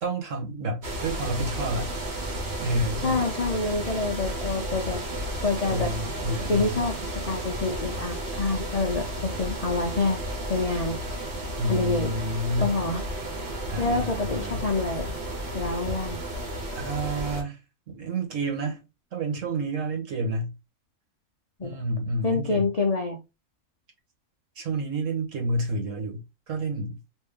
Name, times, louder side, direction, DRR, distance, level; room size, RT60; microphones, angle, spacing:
voice 1, 0.0-1.9 2.6-3.3 5.6-6.8 11.6-12.8 13.7-14.7 16.7-17.6 17.9-18.8 19.1-20.5 21.6-22.7 24.5-26.2 26.5-27.0, right 1 dB, 75° right, 1.6 m, -29 dB
sound 1, 0.8-17.4, right 1 dB, 55° right, 1.3 m, -33 dB
voice 2, 3.0-5.0 5.4-6.0 6.5-10.2 10.5-11.0 11.7-12.1 12.6-13.0 13.8-15.2 15.5-16.2 21.6-21.8 22.2-23.2, left 3 dB, 55° left, 0.4 m, -27 dB
3.4 x 2.6 x 3.5 m
omnidirectional pair, 1.3 m